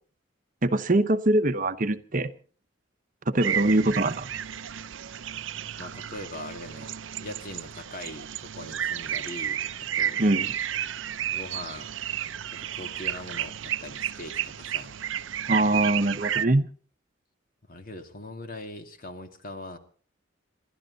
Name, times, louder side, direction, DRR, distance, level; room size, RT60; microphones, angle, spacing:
voice 1, 0.6-2.3 3.3-4.3 10.2-10.5 15.5-16.7, right 2 dB, 45° right, 0.9 m, -23 dB
sound 1, 3.4-16.5, right 10 dB, 80° right, 0.6 m, -32 dB
voice 2, 5.8-6.9 7.2-10.2 11.2-11.9 12.5-15.0 17.7-19.8, left 1 dB, 45° left, 2.3 m, -41 dB
27.5 x 12.0 x 4.0 m
head